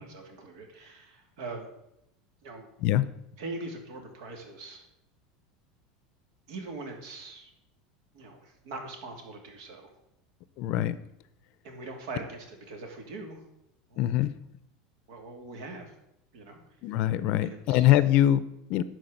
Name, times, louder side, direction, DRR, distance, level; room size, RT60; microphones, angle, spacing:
voice 1, 0.0-1.7 2.4-2.7 3.4-4.9 6.5-7.5 8.1-9.9 11.6-13.4 13.9-14.1 15.1-15.9 16.3-16.6 17.4-17.9, right 3 dB, 70° right, 4 dB, 2.7 m, -42 dB
voice 2, 10.6-11.0 14.0-14.3 16.8-18.8, left 13 dB, 50° left, 15 dB, 0.6 m, -23 dB
11.5 x 4.7 x 7.9 m, 0.83 s
supercardioid pair, 150°, 2 cm